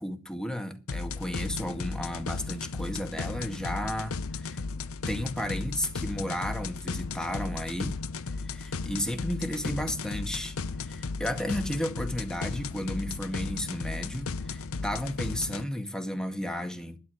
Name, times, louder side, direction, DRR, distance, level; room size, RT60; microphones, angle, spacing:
voice 1, 0.0-4.6 5.1-8.0 8.5-10.6 10.9-17.0, equal, 5° left, 1.9 m, -33 dB
sound 1, 0.9-15.6, left 4 dB, 80° left, 0.8 m, -35 dB
12.5 x 11.0 x 6.4 m
head